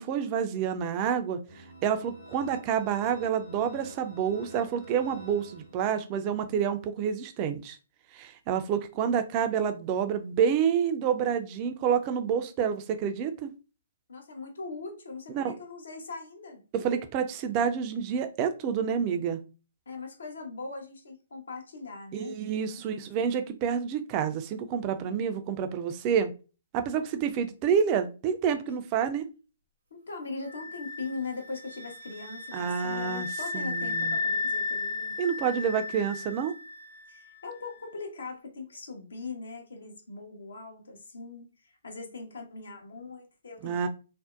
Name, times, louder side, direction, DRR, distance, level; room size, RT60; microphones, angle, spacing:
voice 1, 0.0-7.8 8.1-13.5 15.3-15.5 16.7-19.4 22.1-26.3 26.7-29.2 32.5-33.3 33.5-34.2 35.2-36.5 43.6-43.9, right 7 dB, 30° right, 8 dB, 0.4 m, -28 dB
sound 1, 1.5-6.2, left 1 dB, 55° left, 1.1 m, -49 dB
voice 2, 14.1-16.6 19.9-22.3 22.8-22.9 29.9-35.1 37.1-43.8, left 3 dB, 70° left, 2 dB, 0.8 m, -40 dB
sound 2, 30.5-37.3, left 3 dB, 90° right, 0.7 m, -34 dB
2.6 x 2.1 x 2.3 m, 0.33 s
figure-of-eight pair, 130°, 0 cm